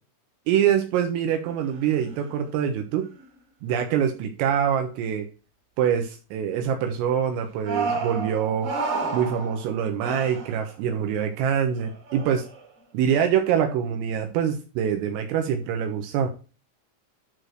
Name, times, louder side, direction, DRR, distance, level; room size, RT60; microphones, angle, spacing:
voice 1, 0.5-3.1 3.6-5.3 5.8-8.7 9.1-12.5 12.9-16.3, right 8 dB, 80° right, 4 dB, 3.9 m, -24 dB
sound 1, 1.5-1.8 2.1-2.4 3.0-3.2 7.6-10.9 11.8-12.7, right 3 dB, 40° right, 4.0 m, -31 dB
12.5 x 4.8 x 4.6 m, 0.34 s
omnidirectional pair, 6.0 m